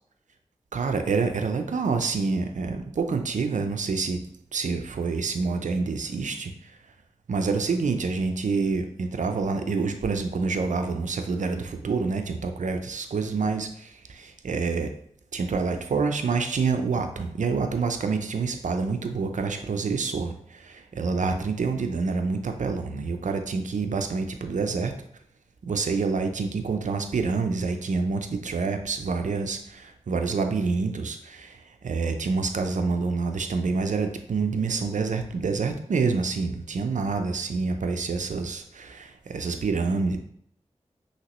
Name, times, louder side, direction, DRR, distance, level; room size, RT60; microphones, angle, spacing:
voice 1, 0.7-4.2 4.5-6.7 7.3-14.9 15.3-24.9 25.6-40.2, right 4 dB, 85° right, 6 dB, 0.5 m, -27 dB
5.8 x 2.9 x 3.0 m, 0.68 s
cardioid pair, 40°, 12 cm